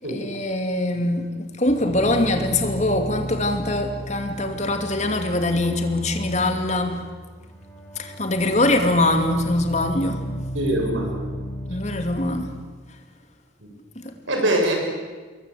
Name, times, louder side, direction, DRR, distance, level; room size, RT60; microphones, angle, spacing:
voice 1, 0.0-7.0 8.0-10.3 11.7-12.6 14.0-14.1, left 1 dB, 35° left, 2.6 m, -23 dB
sound 1, 1.7-12.4, equal, 10° left, 5.4 m, -34 dB
voice 2, 10.5-11.3 13.6-13.7 14.3-14.7, right 1 dB, 90° right, 6.8 m, -23 dB
27.0 x 22.0 x 8.4 m
head